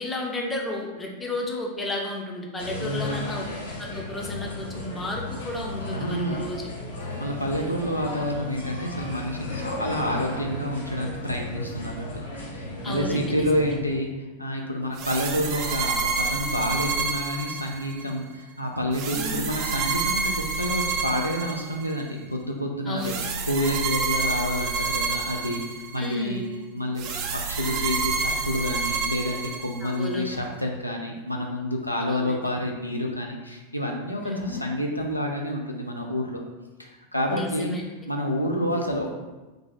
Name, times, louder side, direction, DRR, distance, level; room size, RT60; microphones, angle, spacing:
voice 1, 0.0-3.5 3.8-6.7 12.8-13.5 19.1-19.4 22.9-23.2 26.0-26.4 29.8-30.2 32.1-32.4 34.2-34.6 37.3-37.8, left 2 dB, 15° left, 0 dB, 0.5 m, -32 dB
sound 1, 2.6-13.8, left 1 dB, 65° left, 0.7 m, -35 dB
voice 2, 2.8-3.3 5.9-6.5 7.2-12.2 12.5-14.1 14.4-26.4 26.7-36.4 36.8-37.7 38.1-39.1, equal, 85° left, 1 dB, 0.4 m, -29 dB
sound 2, 15.0-18.1 18.9-22.0 23.0-26.2 27.0-30.1, right 4 dB, 40° right, 0.4 m, -28 dB
3.2 x 2.4 x 3.5 m, 1.1 s
figure-of-eight pair, 90°, 0 cm